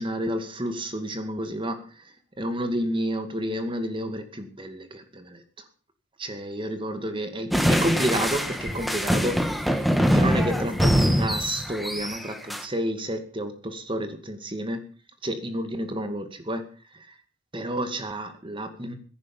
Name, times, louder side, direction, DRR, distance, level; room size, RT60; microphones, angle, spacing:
voice 1, 0.0-5.6 6.2-9.5 10.0-14.8 15.2-16.7 16.9-17.1 17.5-19.0, equal, 25° right, 8 dB, 2.2 m, -30 dB
sound 1, 7.5-12.6, equal, ahead, 1.4 m, -23 dB
16.5 x 10.5 x 7.2 m, 0.42 s
head